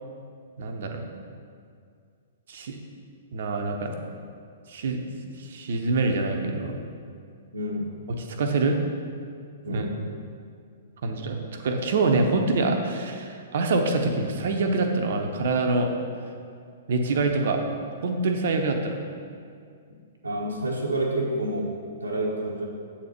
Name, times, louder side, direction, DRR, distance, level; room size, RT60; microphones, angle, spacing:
voice 1, 0.6-1.1 2.5-2.8 3.3-4.0 4.7-5.0 5.4-6.8 8.2-8.8 9.7-9.9 11.0-11.4 11.6-15.9 16.9-17.6 18.0-19.0, right 3 dB, 55° right, 4 dB, 0.9 m, -25 dB
voice 2, 7.5-7.9 9.6-10.0 20.2-22.7, right 1 dB, 75° right, -3 dB, 1.0 m, -29 dB
8.0 x 4.4 x 6.7 m, 2.3 s
figure-of-eight pair, 110°, 0 cm